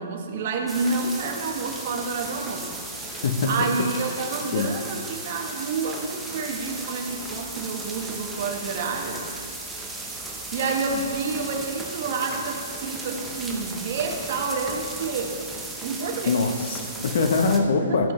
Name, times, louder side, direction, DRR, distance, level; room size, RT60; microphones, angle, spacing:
voice 1, 0.0-2.7 3.5-9.3 10.5-15.4 15.8-16.4 17.8-18.1, right 4 dB, 45° right, 2 dB, 1.3 m, -29 dB
sound 1, 0.7-17.6, right 2 dB, 5° right, 0.9 m, -35 dB
voice 2, 3.1-3.7 4.5-4.7 16.3-18.1, left 4 dB, 60° left, 7 dB, 0.9 m, -23 dB
15.0 x 7.7 x 3.2 m, 2.2 s
hypercardioid pair, 165°, 0 cm